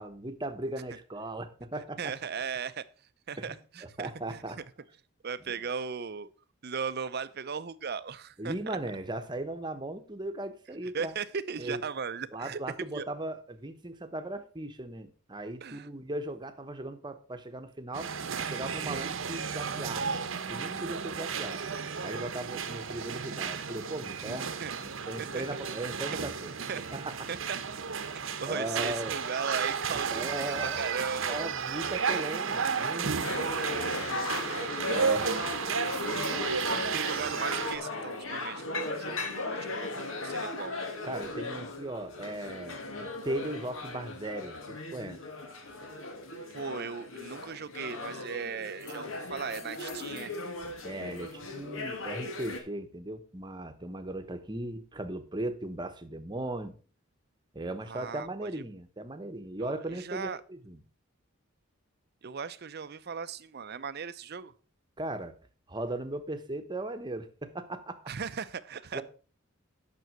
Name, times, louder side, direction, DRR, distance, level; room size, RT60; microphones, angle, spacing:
voice 1, 0.0-2.1 3.4-4.6 8.4-11.1 11.6-11.8 12.3-18.1 18.4-20.2 20.5-21.6 22.0-24.5 24.8-26.5 26.9-27.3 28.1-29.1 29.9-30.8 31.3-33.5 34.8-35.3 41.0-45.2 50.8-56.8 57.5-60.8 65.0-65.3 65.7-68.1 68.9-69.0, right 1 dB, 20° right, 1.1 m, -38 dB
voice 2, 2.0-2.9 3.3-4.4 5.2-6.3 6.6-8.8 10.9-12.6 12.9-13.1 15.6-15.9 24.6-24.7 25.2-25.4 26.7-26.9 27.3-27.6 28.1-31.9 33.0-35.3 35.9-36.0 36.7-40.7 46.5-50.4 57.8-58.6 59.6-60.4 62.2-64.5 68.1-69.0, right 6 dB, 50° right, 0.6 m, -38 dB
sound 1, 17.9-37.8, right 6 dB, 65° right, 0.9 m, -33 dB
sound 2, 33.2-52.6, left 2 dB, 70° left, 1.9 m, -37 dB
9.4 x 6.2 x 6.1 m
head